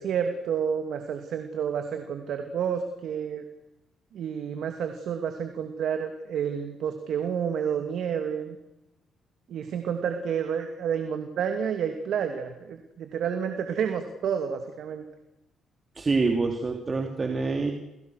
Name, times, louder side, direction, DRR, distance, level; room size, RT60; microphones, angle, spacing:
voice 1, 0.0-3.4 4.1-8.6 9.5-15.0, right 7 dB, 70° right, 6 dB, 2.7 m, -30 dB
voice 2, 16.0-17.7, right 3 dB, 30° right, 2 dB, 3.5 m, -26 dB
29.5 x 26.5 x 6.6 m, 0.91 s
cardioid pair, 90°, 0 cm